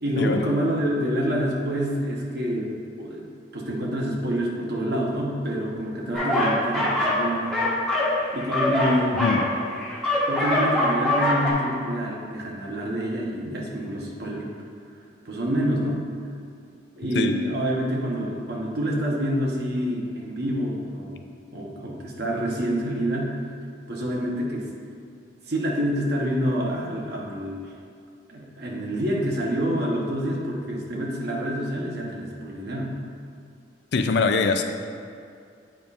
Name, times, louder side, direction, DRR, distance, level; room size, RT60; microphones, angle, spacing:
voice 1, 0.0-3.3 3.5-7.6 7.9-8.1 8.3-9.4 10.3-14.5 15.2-16.1 17.0-23.4 23.9-24.7 25.5-27.7 28.3-33.0, equal, 55° right, -2 dB, 1.0 m, -27 dB
sound 1, 6.1-7.2 7.5-11.5, left 1 dB, 5° left, 1.4 m, -23 dB
voice 2, 33.9-34.6, left 4 dB, 60° left, 6 dB, 0.4 m, -23 dB
8.6 x 5.5 x 2.4 m, 2.4 s
head